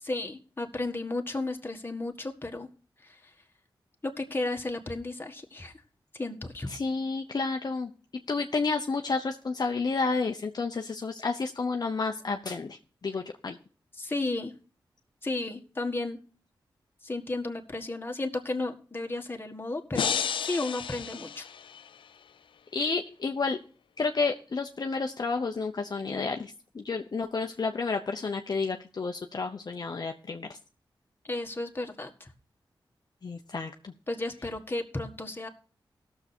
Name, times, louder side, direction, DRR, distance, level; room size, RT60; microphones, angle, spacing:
voice 1, 0.0-2.7 3.0-3.2 4.0-5.7 6.1-6.7 14.0-14.5 15.2-16.2 17.0-21.5 31.2-32.3 34.1-35.5, left 2 dB, 25° left, 2 dB, 1.7 m, -33 dB
voice 2, 6.7-7.9 8.3-12.8 13.0-13.6 22.7-23.6 24.0-30.6 33.2-33.9, left 4 dB, 50° left, 4 dB, 0.8 m, -30 dB
sound 1, 19.9-22.1, left 7 dB, 80° left, 0.4 m, -32 dB
17.0 x 6.9 x 4.4 m, 0.39 s
cardioid pair, 60°, 9 cm